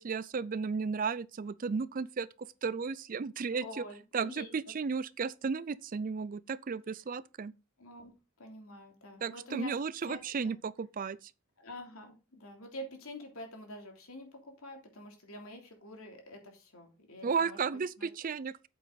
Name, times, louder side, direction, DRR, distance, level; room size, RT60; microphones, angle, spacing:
voice 1, 0.0-3.8 4.1-7.5 9.2-11.3 17.2-18.7, right 5 dB, 40° right, 0.4 m, -34 dB
voice 2, 3.5-4.6 7.8-9.7 10.1-10.2 10.4-10.6 11.6-17.6 18.0-18.1, left 1 dB, 85° left, 3.0 m, -47 dB
8.6 x 7.9 x 4.0 m
head